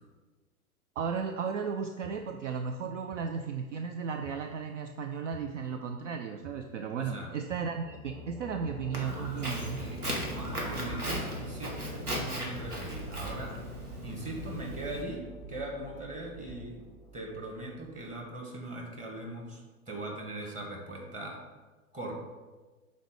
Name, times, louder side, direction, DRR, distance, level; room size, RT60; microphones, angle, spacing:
sound 1, 1.0-1.1 2.0-2.1 3.1-3.2 4.2-4.4 5.3-5.5 6.4-6.6 7.5-7.7 8.6-8.9 9.8-10.0 10.9-11.1 12.1-12.3 13.2-13.4 14.3-14.5 15.4-15.6 16.5-16.7, right 3 dB, 35° right, 2.1 m, -48 dB
voice 1, 1.0-9.8 20.4-20.5, right 6 dB, 55° right, 6 dB, 0.5 m, -35 dB
voice 2, 7.0-7.3 9.5-13.6 14.0-15.2 15.5-16.8 17.1-19.6 19.9-21.4 21.9-22.1, right 1 dB, 15° right, -1 dB, 1.2 m, -40 dB
sound 2, 7.7-18.3, left 1 dB, ahead, 0.7 m, -48 dB
Walk footsteps, 8.9-15.0, equal, 85° right, 1.4 m, -37 dB
5.8 x 4.1 x 4.8 m, 1.3 s
figure-of-eight pair, 95°, 44 cm